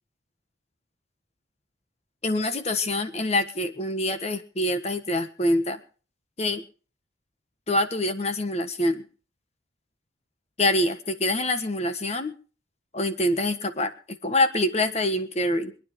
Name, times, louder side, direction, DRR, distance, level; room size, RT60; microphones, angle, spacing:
voice 1, 2.2-5.8 6.4-6.7 7.7-9.0 10.6-12.3 12.9-15.7, left 1 dB, 35° left, 9 dB, 1.4 m, -25 dB
25.5 x 9.8 x 3.8 m, 0.38 s
head